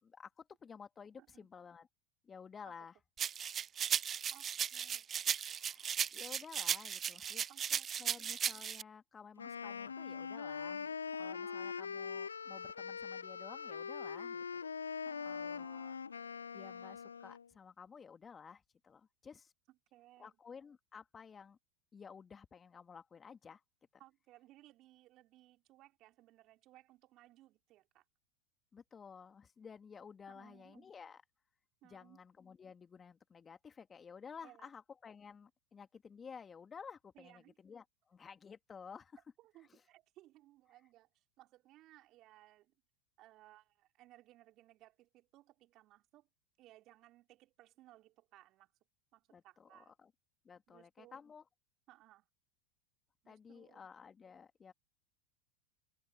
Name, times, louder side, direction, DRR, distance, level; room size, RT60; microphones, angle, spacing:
voice 1, 0.0-1.9 2.2-2.9 5.6-7.5 8.0-14.6 15.3-15.9 16.5-19.5 20.2-21.6 21.9-23.6 28.7-31.2 31.8-39.2 49.3-50.1 50.4-51.4 53.3-54.7, left 6 dB, 25° left, 2.5 m, -54 dB
voice 2, 1.2-1.5 2.7-2.8 4.3-5.1 7.5-8.2 11.1-11.9 15.0-16.3 19.7-20.4 24.0-28.0 30.3-30.9 31.8-32.2 34.4-34.7 37.1-37.6 39.4-42.7 43.2-46.3 46.6-48.7 49.1-49.9 50.7-51.2 51.9-52.3 53.2-53.8, right 16 dB, 45° right, 4.5 m, -62 dB
sound 1, 3.2-8.8, right 8 dB, 30° right, 0.4 m, -36 dB
Wind instrument woodwind instrument, 9.4-17.5, left 6 dB, 85° left, 0.6 m, -42 dB
figure-of-eight pair, 85°, 0 cm